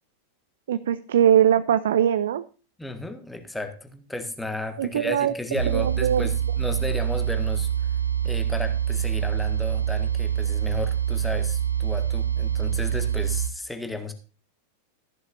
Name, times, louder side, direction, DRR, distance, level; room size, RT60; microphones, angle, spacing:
voice 1, 0.7-2.4 4.8-6.3, right 9 dB, 60° right, 14 dB, 0.5 m, -22 dB
voice 2, 2.8-7.7 8.2-14.1, left 2 dB, 5° left, 7 dB, 1.6 m, -34 dB
sound 1, 5.5-13.5, right 9 dB, 85° right, 0.8 m, -25 dB
14.5 x 11.0 x 2.6 m, 0.35 s
figure-of-eight pair, 90°, 0 cm